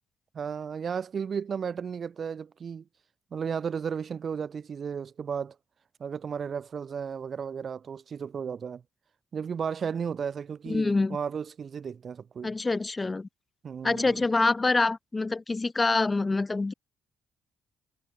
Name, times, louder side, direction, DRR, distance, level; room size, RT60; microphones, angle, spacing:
voice 1, 0.3-2.8 3.3-5.6 6.0-8.8 9.3-12.5 13.6-14.2, right 6 dB, 50° right, 3.1 m, -34 dB
voice 2, 10.7-11.2 12.4-13.3 13.8-16.7, left 3 dB, 20° left, 7.9 m, -26 dB
cardioid pair, 90°, 0 cm